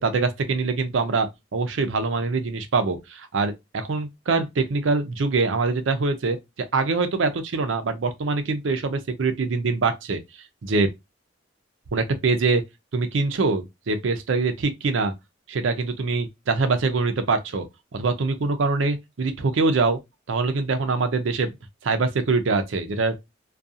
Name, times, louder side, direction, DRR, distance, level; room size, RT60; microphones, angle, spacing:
voice 1, 0.0-6.4 6.7-10.2 10.6-10.9 11.9-12.6 12.9-15.1 15.5-17.6 17.9-20.0 20.3-21.5 21.8-23.1, right 3 dB, 80° right, 0.5 m, -24 dB
2.4 x 2.3 x 2.6 m
head